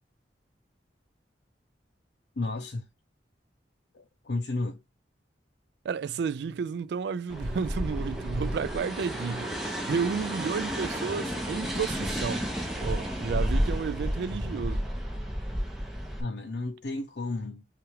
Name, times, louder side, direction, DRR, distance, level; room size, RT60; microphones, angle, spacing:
voice 1, 2.4-2.8 3.9-4.8 16.2-17.6, left 2 dB, 65° left, 0.6 m, -33 dB
voice 2, 5.8-12.5 12.8-14.8, right 6 dB, 65° right, 0.3 m, -32 dB
sound 1, 7.3-16.2, equal, ahead, 0.8 m, -31 dB
5.7 x 2.5 x 3.1 m
head